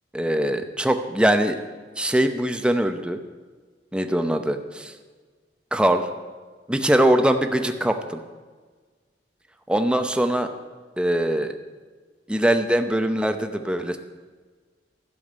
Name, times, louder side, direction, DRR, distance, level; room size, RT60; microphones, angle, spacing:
voice 1, 0.1-1.6 2.0-3.2 3.9-4.9 5.7-6.1 6.7-8.2 9.7-10.5 11.0-11.6 12.3-14.0, right 1 dB, 5° right, 7 dB, 0.7 m, -22 dB
12.0 x 7.1 x 9.2 m, 1.4 s
head